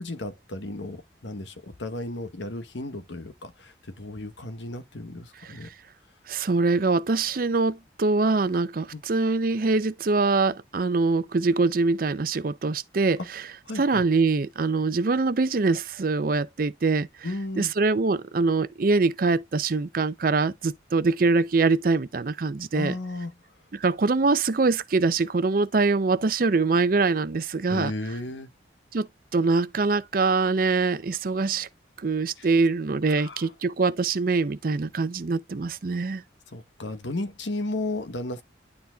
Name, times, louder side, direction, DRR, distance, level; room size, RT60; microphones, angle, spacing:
voice 1, 0.0-5.7 8.9-9.0 13.7-14.0 17.2-17.7 22.7-23.3 27.7-28.5 32.4-32.5 33.2-33.5 36.5-38.4, left 2 dB, 75° left, 1.1 m, -34 dB
voice 2, 5.4-5.7 6.3-13.5 13.8-17.1 17.6-23.0 23.7-27.9 28.9-29.1 29.3-31.7 32.0-36.2, right 3 dB, 50° right, 0.5 m, -24 dB
11.5 x 4.1 x 2.3 m
head